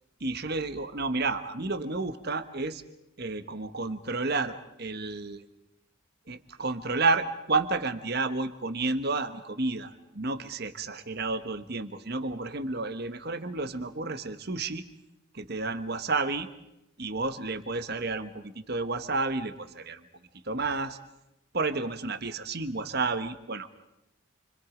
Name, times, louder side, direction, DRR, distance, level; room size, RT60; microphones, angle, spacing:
voice 1, 0.2-2.8 3.2-5.4 6.3-14.8 15.3-16.5 17.0-20.0 20.4-21.0 21.5-23.7, right 3 dB, 50° right, 9 dB, 1.4 m, -31 dB
29.5 x 25.5 x 5.2 m, 0.84 s
head